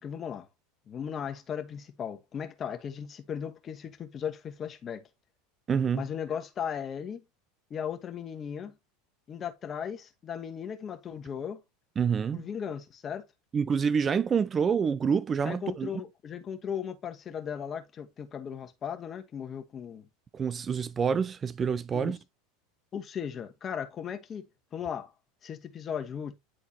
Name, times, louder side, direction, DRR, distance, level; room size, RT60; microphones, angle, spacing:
voice 1, 0.0-0.5 0.9-5.1 5.9-7.2 7.7-8.7 9.3-11.6 12.3-13.2 15.4-20.1 21.9-22.2 22.9-24.5 24.7-25.1 25.4-26.3, left 8 dB, 35° left, 1.3 m, -37 dB
voice 2, 5.7-6.0 12.0-12.5 13.5-15.9 20.3-22.2, right 6 dB, 30° right, 0.4 m, -27 dB
10.0 x 3.7 x 2.8 m
hypercardioid pair, 80°, 0 cm